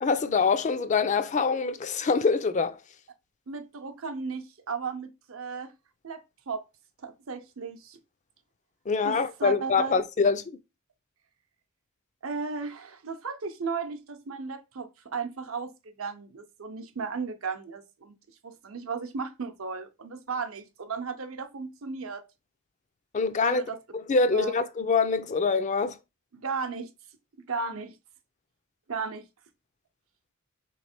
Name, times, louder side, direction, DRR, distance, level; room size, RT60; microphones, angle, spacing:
voice 1, 0.0-2.8 8.9-10.6 23.1-23.6 23.9-26.0, left 4 dB, 35° left, 0.4 m, -25 dB
voice 2, 3.5-5.7 6.0-6.6 7.0-8.0 9.0-9.9 12.2-18.1 18.4-22.2 23.4-23.8 24.3-24.5 26.3-26.9 27.5-27.9 28.9-29.2, right 5 dB, 70° right, 0.7 m, -35 dB
3.3 x 3.2 x 4.3 m
head